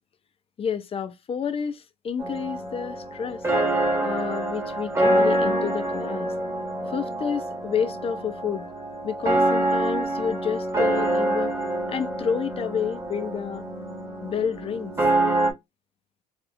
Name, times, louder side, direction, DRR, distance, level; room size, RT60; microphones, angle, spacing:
voice 1, 0.6-3.4 4.0-6.3 6.9-8.7 9.0-11.5 11.9-13.6 14.2-14.9, left 7 dB, 35° left, 0.5 m, -29 dB
sound 1, 2.2-15.5, right 1 dB, 15° right, 1.0 m, -26 dB
4.2 x 2.4 x 2.5 m
cardioid pair, 110°, 17 cm